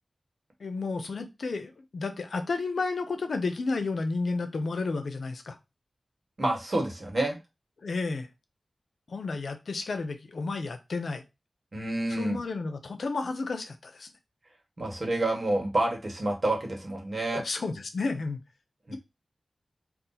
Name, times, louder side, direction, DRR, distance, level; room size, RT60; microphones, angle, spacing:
voice 1, 0.6-5.6 7.8-8.3 9.1-11.2 12.1-14.1 17.3-18.4, left 3 dB, 85° left, 7 dB, 0.5 m, -32 dB
voice 2, 6.4-7.4 11.7-12.4 14.8-17.4 18.9-19.0, right 1 dB, 50° right, 1 dB, 1.3 m, -28 dB
2.7 x 2.4 x 3.8 m, 0.24 s
wide cardioid pair, 60°, 0 cm